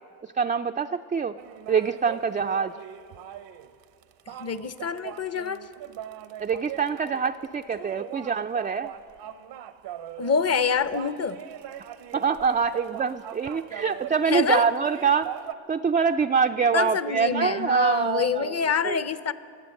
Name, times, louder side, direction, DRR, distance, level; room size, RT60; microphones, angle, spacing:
voice 1, 0.4-1.4 1.7-2.7 6.4-8.9 12.1-15.3 15.7-18.6 18.8-19.0, right 6 dB, 20° right, 7 dB, 0.3 m, -24 dB
sound 1, 1.4-15.5, right 11 dB, 75° right, 0.7 m, -40 dB
voice 2, 4.3-5.6 10.2-11.4 14.3-14.6 16.7-19.3, left 6 dB, 35° left, 14 dB, 0.7 m, -26 dB
22.5 x 8.2 x 6.5 m, 2.3 s
supercardioid pair, 55°, 44 cm